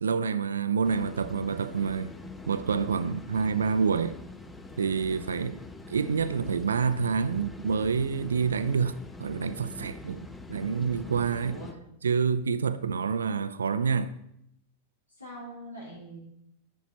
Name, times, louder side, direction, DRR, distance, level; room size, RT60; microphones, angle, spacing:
voice 1, 0.0-2.1 2.5-4.2 4.8-5.6 5.9-11.6 12.0-14.1, right 6 dB, 70° right, 0.5 m, -27 dB
sound 1, 0.8-11.7, left 2 dB, 10° left, 0.9 m, -44 dB
voice 2, 15.2-16.2, equal, 85° left, 3.9 m, -42 dB
11.0 x 9.3 x 4.1 m
figure-of-eight pair, 90°, 0 cm